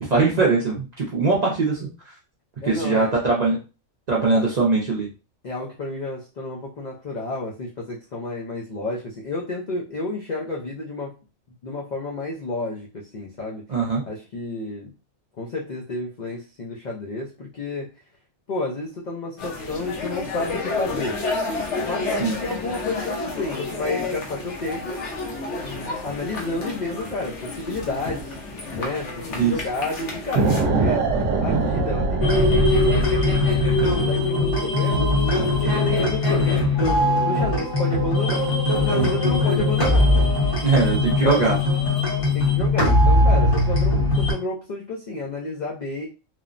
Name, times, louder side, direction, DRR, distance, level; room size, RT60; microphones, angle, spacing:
voice 1, 0.0-1.9 2.6-3.6 4.1-5.1 13.7-14.0 22.2-22.3 29.4-29.6 40.6-41.6, right 4 dB, 50° right, -4 dB, 0.5 m, -21 dB
voice 2, 2.6-3.1 4.3-4.4 5.4-11.1 11.6-13.6 14.1-14.9 15.4-17.9 18.5-21.2 21.8-25.0 25.6-28.4 28.7-31.0 31.4-35.3 35.6-36.5 37.2-40.4 40.7-40.9 41.2-41.5 42.3-46.1, left 2 dB, 85° left, -2 dB, 0.4 m, -31 dB
sound 1, 19.4-30.6, left 3 dB, 60° left, 0.9 m, -30 dB
sound 2, 30.4-34.1, right 3 dB, 70° right, 1.0 m, -22 dB
sound 3, 32.2-44.3, left 2 dB, 30° left, 0.7 m, -20 dB
3.1 x 2.0 x 2.4 m, 0.32 s
omnidirectional pair, 1.4 m